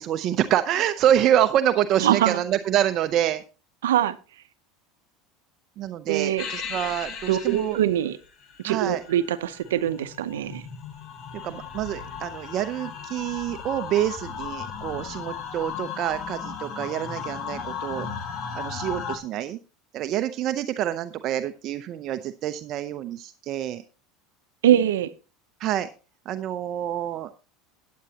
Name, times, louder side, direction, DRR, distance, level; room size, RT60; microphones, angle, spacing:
voice 1, 0.0-3.4 5.8-7.8 8.6-9.0 11.3-18.1 18.5-19.6 19.9-23.8 25.6-25.9 26.3-27.4, right 11 dB, 50° right, 0.6 m, -26 dB
voice 2, 2.0-2.4 3.8-4.2 6.1-6.5 7.3-8.2 8.6-10.6 24.6-25.1, right 11 dB, 90° right, 0.7 m, -23 dB
sound 1, 6.4-19.2, left 6 dB, 45° left, 1.6 m, -36 dB
14.0 x 9.4 x 2.9 m
supercardioid pair, 105°, 0 cm